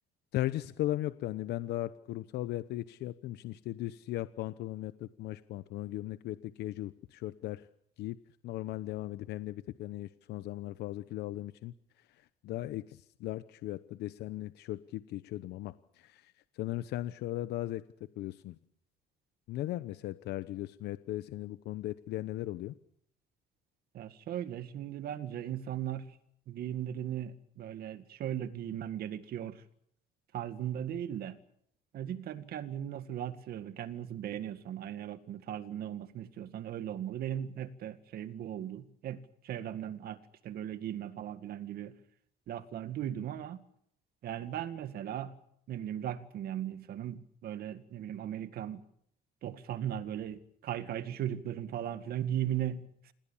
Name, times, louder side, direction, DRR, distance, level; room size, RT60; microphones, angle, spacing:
voice 1, 0.3-7.7 8.0-8.2 8.4-17.8 18.2-18.6 19.5-22.7, left 15 dB, 75° left, 0.9 m, -37 dB
voice 2, 23.9-26.1 26.5-29.6 30.3-31.4 31.9-41.9 42.5-43.6 44.2-45.3 45.7-48.8 49.4-53.1, right 10 dB, 65° right, 2.0 m, -38 dB
27.5 x 19.5 x 7.3 m
cardioid pair, 110°, 17 cm